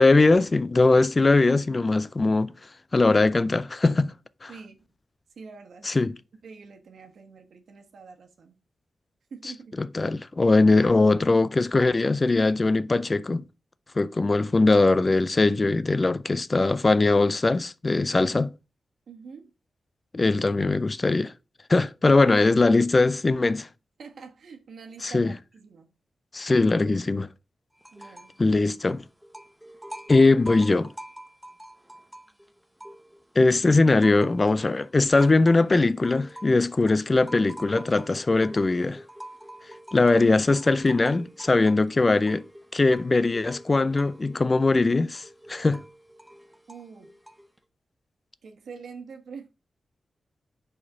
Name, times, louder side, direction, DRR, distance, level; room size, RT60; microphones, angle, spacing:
voice 1, 0.0-2.5 2.9-4.1 4.4-4.5 5.8-6.2 9.8-13.4 14.0-18.5 20.1-21.3 21.7-23.7 25.0-25.3 26.3-27.3 28.4-29.0 30.1-30.9 33.4-39.0 39.9-42.4 42.7-45.8, left 3 dB, 30° left, 0.3 m, -21 dB
voice 2, 4.5-4.9 5.4-5.9 6.4-8.5 9.3-9.9 19.1-19.5 24.0-25.9 27.9-28.4 46.7-47.1 48.4-49.5, right 5 dB, 75° right, 1.3 m, -45 dB
sound 1, 27.8-28.4 28.7-33.4 33.7-47.6, right 1 dB, 5° right, 0.7 m, -46 dB
5.0 x 4.3 x 5.3 m
wide cardioid pair, 100°, 0 cm